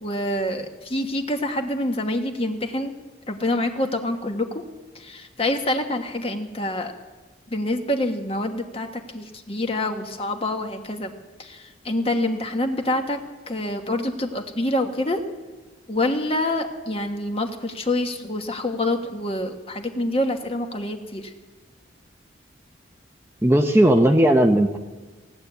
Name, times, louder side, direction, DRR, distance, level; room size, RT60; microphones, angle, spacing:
voice 1, 0.0-2.9 3.3-4.6 5.0-6.9 7.5-11.1 11.4-13.2 13.5-15.2 15.9-21.2, left 1 dB, 30° left, 5 dB, 1.3 m, -26 dB
voice 2, 23.4-24.8, right 1 dB, 10° right, 4 dB, 0.7 m, -16 dB
17.5 x 10.0 x 8.1 m, 1.3 s
head